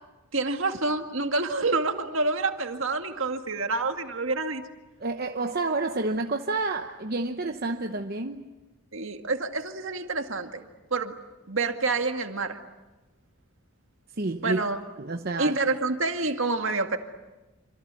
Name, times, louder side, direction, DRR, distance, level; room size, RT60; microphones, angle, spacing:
voice 1, 0.3-4.6 8.9-10.6 10.9-11.1 11.5-12.6 14.4-14.8 15.4-17.0, right 3 dB, 65° right, 2.0 m, -27 dB
voice 2, 5.0-8.5 14.2-14.6 15.0-15.6, right 3 dB, 45° right, 1.0 m, -29 dB
27.5 x 26.0 x 8.2 m
head